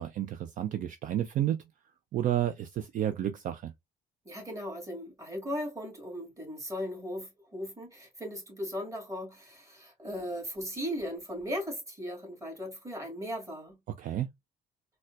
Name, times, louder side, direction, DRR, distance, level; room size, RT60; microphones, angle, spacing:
voice 1, 0.0-1.6 2.1-3.7 14.0-14.3, right 11 dB, 50° right, 0.4 m, -31 dB
voice 2, 4.3-13.8, equal, 15° right, 1.9 m, -37 dB
4.1 x 2.2 x 2.3 m
cardioid pair, 110°, 17 cm